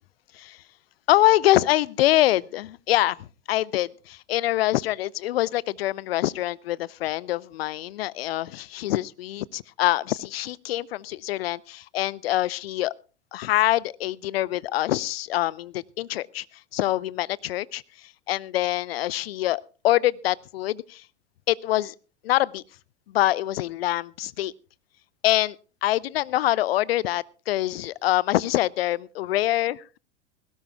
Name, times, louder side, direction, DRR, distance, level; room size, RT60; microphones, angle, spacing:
voice 1, 1.1-12.9 13.3-16.4 16.7-21.0 21.5-21.9 22.2-22.6 23.1-24.5 25.2-25.6 25.8-30.0, left 15 dB, 60° left, 0.7 m, -25 dB
21.0 x 17.5 x 2.3 m
figure-of-eight pair, 90°, 34 cm